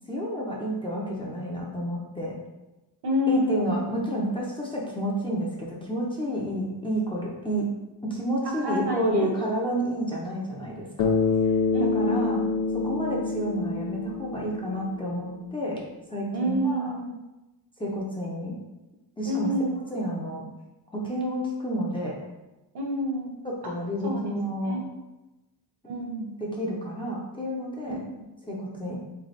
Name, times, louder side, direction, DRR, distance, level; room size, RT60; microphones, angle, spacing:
voice 1, 0.1-2.3 3.3-7.6 8.0-11.1 11.8-12.4 12.7-15.8 16.1-16.9 17.8-18.6 19.2-19.5 19.9-20.4 20.9-22.2 23.4-24.8 26.4-28.0 28.4-29.0, equal, 10° left, -5 dB, 0.5 m, -30 dB
voice 2, 3.0-3.8 8.4-9.3 11.7-12.2 16.3-17.1 19.2-19.8 22.7-23.3 24.0-24.3 24.6-24.9 25.8-26.4 27.8-28.3, equal, 60° right, 0 dB, 1.1 m, -28 dB
Bass guitar, 11.0-15.4, left 4 dB, 90° left, 0.6 m, -26 dB
3.3 x 3.3 x 4.0 m, 1.0 s
wide cardioid pair, 155°, 44 cm